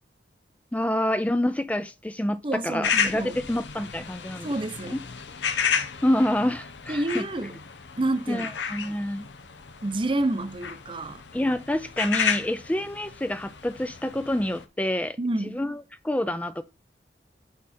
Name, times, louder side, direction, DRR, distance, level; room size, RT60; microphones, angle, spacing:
voice 1, 0.7-2.4 2.6-4.5 4.9-5.0 6.0-7.2 8.3-9.3 11.3-15.2 15.4-16.6, left 1 dB, 10° left, 0.3 m, -27 dB
voice 2, 2.4-3.4 4.4-5.0 6.9-7.6 8.0-8.5 9.8-11.2 15.2-15.6, right 1 dB, 30° right, 0.6 m, -28 dB
sound 1, 2.8-14.6, left 6 dB, 85° left, 0.9 m, -32 dB
6.3 x 5.6 x 4.2 m
head